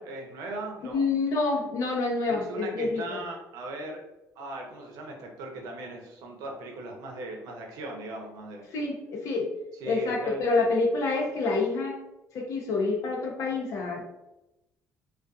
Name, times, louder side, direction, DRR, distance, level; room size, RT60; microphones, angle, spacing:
voice 1, 0.0-1.0 2.3-4.0 4.4-8.7 9.8-10.7, right 2 dB, 90° right, 2 dB, 0.6 m, -38 dB
voice 2, 0.9-3.2 8.7-9.5 9.9-12.0 12.3-14.1, left 3 dB, 60° left, 0 dB, 0.6 m, -27 dB
2.5 x 2.3 x 2.3 m, 0.93 s
cardioid pair, 145°, 6 cm